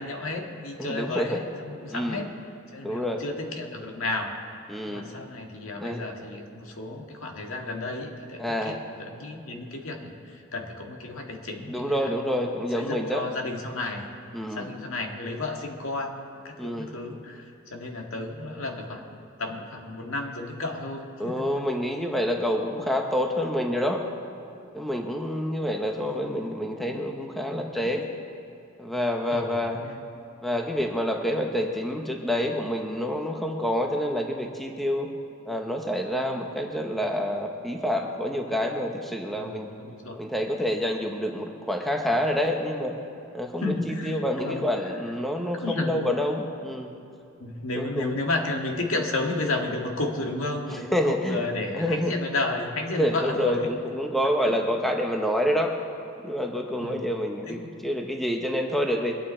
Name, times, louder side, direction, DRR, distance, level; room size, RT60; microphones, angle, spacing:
voice 1, 0.0-2.3 2.7-4.3 4.9-12.1 12.8-14.1 14.5-21.5 27.7-27.9 29.3-30.0 39.4-40.2 43.6-45.0 45.6-46.0 47.4-53.7 54.4-54.5 56.8-57.1 57.5-57.7, left 2 dB, 75° left, 2 dB, 1.8 m, -32 dB
voice 2, 0.8-1.4 1.9-2.3 2.8-3.2 4.7-5.1 5.8-6.0 8.4-8.8 11.7-13.2 14.3-14.7 16.6-17.0 21.2-24.0 24.7-28.1 28.8-29.8 30.4-35.1 35.5-39.7 40.2-42.9 43.3-46.9 47.7-48.1 50.9-51.4 51.7-52.1 52.9-55.7 56.2-59.2, equal, ahead, 2 dB, 0.9 m, -27 dB
23.0 x 9.2 x 4.4 m, 2.7 s
head